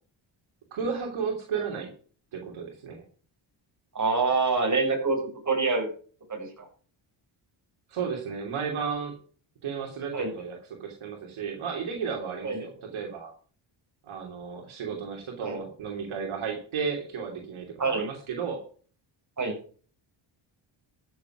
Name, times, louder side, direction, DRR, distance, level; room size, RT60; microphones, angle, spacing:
voice 1, 0.7-1.9 2.3-3.0 7.9-9.2 9.6-13.3 14.1-18.6, right 6 dB, 80° right, 1 dB, 3.0 m, -33 dB
voice 2, 3.9-5.2 5.4-5.9 6.3-6.7 10.1-10.3 12.4-12.6 14.9-15.0 15.4-15.6 17.8-18.1 19.4-19.5, right 3 dB, 35° right, 1 dB, 6.8 m, -26 dB
13.5 x 7.1 x 6.1 m, 0.42 s
cardioid pair, 95°, 48 cm